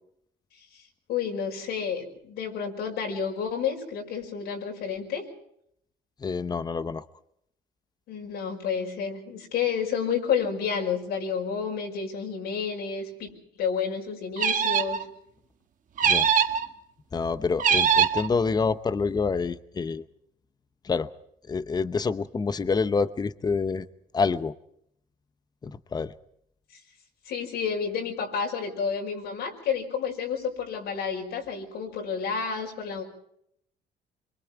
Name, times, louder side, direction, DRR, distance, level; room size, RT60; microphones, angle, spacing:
voice 1, 1.1-5.3 8.1-13.3 13.6-15.0 27.3-33.0, left 6 dB, 80° left, 1 dB, 5.6 m, -30 dB
voice 2, 6.2-7.0 16.0-16.3 17.1-20.0 20.8-21.1 21.5-23.9 24.1-24.5 25.6-26.1, left 4 dB, 25° left, 13 dB, 0.8 m, -27 dB
sound 1, 14.4-15.0 16.0-16.6 17.6-18.3, right 7 dB, 50° right, 1.5 m, -22 dB
26.0 x 24.0 x 4.6 m, 0.73 s
cardioid pair, 110°, 17 cm